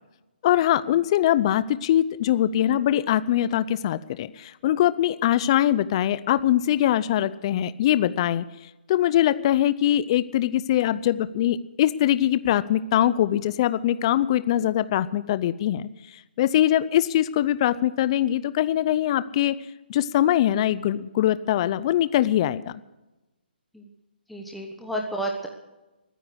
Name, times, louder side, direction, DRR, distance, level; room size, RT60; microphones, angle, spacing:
voice 1, 0.4-19.6 19.9-22.7, left 12 dB, 30° left, 15 dB, 0.5 m, -22 dB
voice 2, 24.3-25.5, right 1 dB, ahead, -1 dB, 1.2 m, -31 dB
21.5 x 10.0 x 6.3 m, 1.0 s
hypercardioid pair, 155°, 6 cm